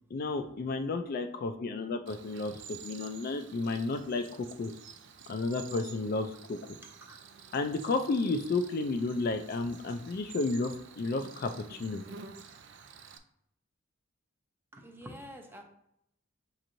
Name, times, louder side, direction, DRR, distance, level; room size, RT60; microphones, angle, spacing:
voice 1, 0.1-4.2 4.6-4.7 5.3-6.6 7.5-12.0, left 3 dB, 45° left, 6 dB, 0.3 m, -32 dB
Cricket, 2.1-13.2, right 6 dB, 60° right, 0.4 m, -50 dB
voice 2, 6.8-7.2 14.7-15.6, equal, 10° right, 3 dB, 0.6 m, -47 dB
6.4 x 2.9 x 2.6 m, 0.74 s
head